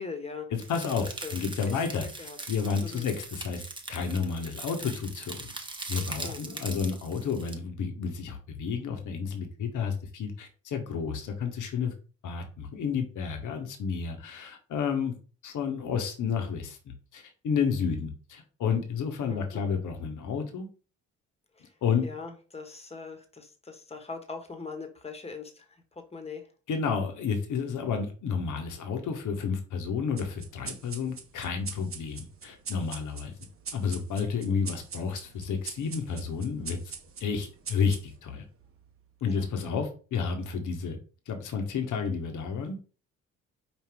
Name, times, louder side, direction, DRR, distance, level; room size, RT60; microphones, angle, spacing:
voice 1, 0.0-0.5 0.9-1.4 1.7-2.4 2.8-3.1 6.2-6.6 19.2-19.8 21.5-21.7 22.0-26.5 39.3-39.8, left 4 dB, 15° left, 5 dB, 1.2 m, -42 dB
voice 2, 0.5-3.6 3.9-5.5 5.9-11.9 12.2-15.2 15.4-20.7 21.8-22.0 26.7-33.4 33.7-36.8 37.2-38.4 39.2-41.0 41.3-42.8, left 6 dB, 55° left, 5 dB, 1.0 m, -31 dB
sound 1, 0.6-7.6, right 2 dB, 15° right, 0.9 m, -41 dB
sound 2, 30.2-39.0, right 5 dB, 35° right, 0.9 m, -43 dB
5.0 x 2.4 x 3.5 m, 0.36 s
hypercardioid pair, 45°, 37 cm